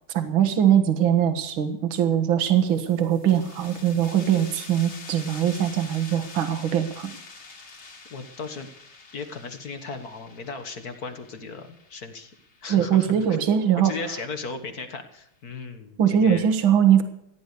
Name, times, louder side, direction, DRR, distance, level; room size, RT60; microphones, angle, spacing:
voice 1, 0.1-7.1 12.7-13.9 16.0-17.0, right 9 dB, 65° right, 8 dB, 2.2 m, -21 dB
sound 1, 2.5-13.9, left 3 dB, 75° left, 3.8 m, -46 dB
voice 2, 8.1-8.7 9.1-12.3 12.6-13.3 13.8-16.5, left 4 dB, 45° left, 7 dB, 1.8 m, -36 dB
16.0 x 10.0 x 6.7 m, 0.80 s
omnidirectional pair, 2.4 m